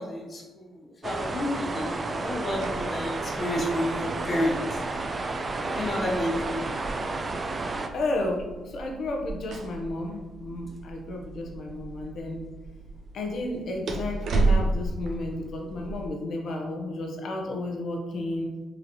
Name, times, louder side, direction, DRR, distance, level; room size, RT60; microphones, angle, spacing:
voice 1, 0.0-4.8 5.5-6.6, left 1 dB, 40° left, -1 dB, 1.2 m, -30 dB
sound 1, 1.0-7.9, right 3 dB, 35° right, 0.4 m, -31 dB
sound 2, 2.1-16.1, right 2 dB, 65° right, 0.7 m, -34 dB
voice 2, 7.9-12.4 13.1-18.5, left 2 dB, 65° left, 1 dB, 0.9 m, -32 dB
5.0 x 3.1 x 3.0 m, 1.2 s
cardioid pair, 80°, 0 cm